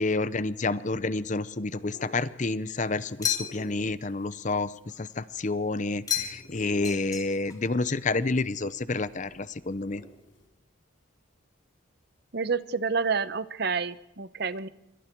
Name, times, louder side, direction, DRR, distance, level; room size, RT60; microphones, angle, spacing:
voice 1, 0.0-10.0, left 3 dB, 35° left, 16 dB, 0.7 m, -29 dB
sound 1, 1.7-10.5, equal, 65° left, 4.9 m, -51 dB
sound 2, 3.2-3.8 6.1-6.6 6.8-7.6, left 7 dB, 15° left, 1.9 m, -32 dB
voice 2, 12.3-14.7, right 5 dB, 50° right, 15 dB, 0.9 m, -29 dB
27.0 x 24.5 x 4.6 m, 0.88 s
head